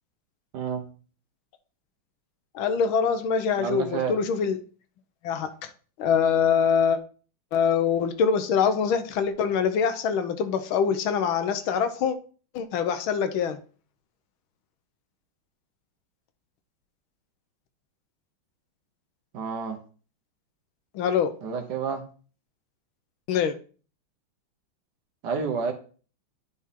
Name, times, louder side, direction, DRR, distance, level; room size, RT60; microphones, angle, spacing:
voice 1, 2.5-4.6 5.2-5.5 6.0-7.0 7.5-12.2 12.5-13.6 20.9-21.3 23.3-23.6, left 6 dB, 75° left, 1.5 m, -24 dB
voice 2, 3.6-4.2 19.3-19.8 21.4-22.0 25.2-25.7, right 6 dB, 60° right, 1.4 m, -29 dB
9.7 x 4.3 x 3.6 m
omnidirectional pair, 2.3 m